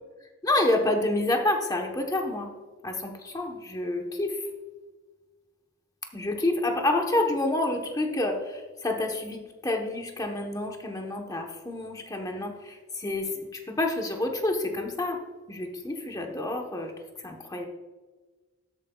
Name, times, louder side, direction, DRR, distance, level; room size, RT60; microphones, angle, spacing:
voice 1, 0.4-2.5 2.8-4.4 6.1-15.2 15.5-16.9 17.2-17.7, left 2 dB, 15° left, 2 dB, 1.0 m, -28 dB
12.5 x 8.8 x 2.3 m, 1.3 s
head